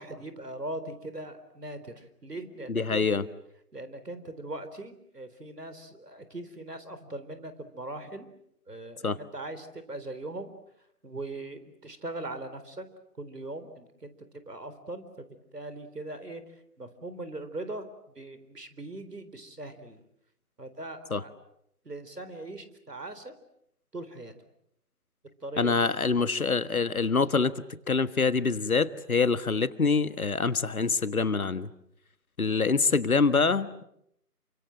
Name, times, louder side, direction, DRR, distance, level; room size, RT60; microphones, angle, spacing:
voice 1, 0.0-3.1 3.7-8.3 8.7-10.5 11.0-12.9 13.2-15.3 15.5-16.4 16.8-17.9 18.2-20.0 20.6-21.3 21.8-23.3 23.9-24.3 25.4-25.9, right 2 dB, 75° right, 11 dB, 4.1 m, -40 dB
voice 2, 2.7-3.3 9.0-9.2 21.1-21.2 25.6-31.7 32.4-33.8, left 4 dB, 60° left, 14 dB, 1.5 m, -25 dB
28.5 x 25.5 x 7.7 m, 0.75 s
figure-of-eight pair, 160°, 48 cm